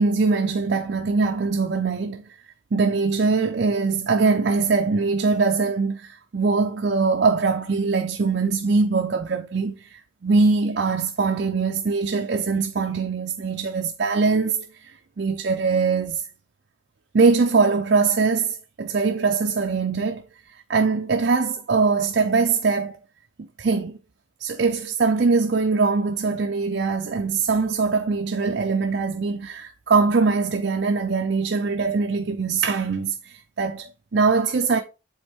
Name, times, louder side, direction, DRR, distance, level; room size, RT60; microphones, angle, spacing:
voice 1, 0.0-2.2 2.7-16.3 17.1-20.2 20.7-23.0 23.4-24.0 24.4-34.8, right 4 dB, 55° right, 0.5 m, -22 dB
8.1 x 3.5 x 3.5 m
head